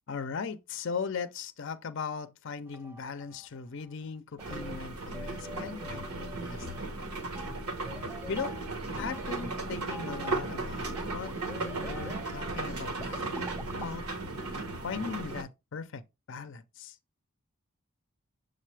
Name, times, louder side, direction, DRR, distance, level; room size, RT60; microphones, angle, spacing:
voice 1, 0.1-6.8 8.3-8.5 9.0-14.1 14.8-16.0 16.3-17.0, left 5 dB, 55° left, 0.5 m, -39 dB
sound 1, 2.7-13.9, equal, 10° right, 0.3 m, -47 dB
sound 2, 4.4-15.4, right 2 dB, 80° right, 1.3 m, -36 dB
7.4 x 3.9 x 3.2 m
head